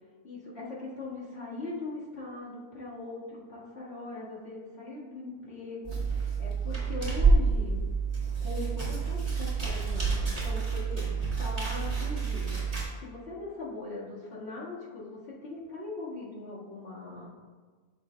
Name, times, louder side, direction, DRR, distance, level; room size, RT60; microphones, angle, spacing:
voice 1, 0.2-7.8 8.4-12.7 13.0-17.3, left 2 dB, 45° left, -7 dB, 2.1 m, -40 dB
sound 1, 5.8-12.8, right 4 dB, 25° right, 2.4 m, -28 dB
10.5 x 6.6 x 2.3 m, 1.4 s
omnidirectional pair, 1.6 m